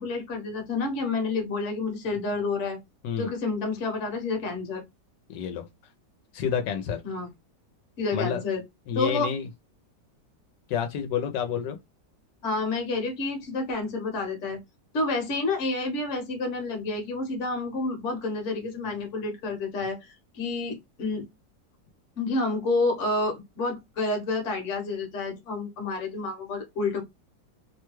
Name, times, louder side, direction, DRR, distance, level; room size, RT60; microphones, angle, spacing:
voice 1, 0.0-2.8 3.2-4.8 7.0-7.3 8.0-8.6 8.9-9.3 12.4-14.6 14.9-21.2 22.2-27.0, left 3 dB, 50° left, 1.1 m, -29 dB
voice 2, 5.3-5.7 6.3-7.0 8.1-8.4 8.9-9.5 10.7-11.8, left 8 dB, 80° left, 1.2 m, -29 dB
3.0 x 2.2 x 3.0 m
omnidirectional pair, 1.9 m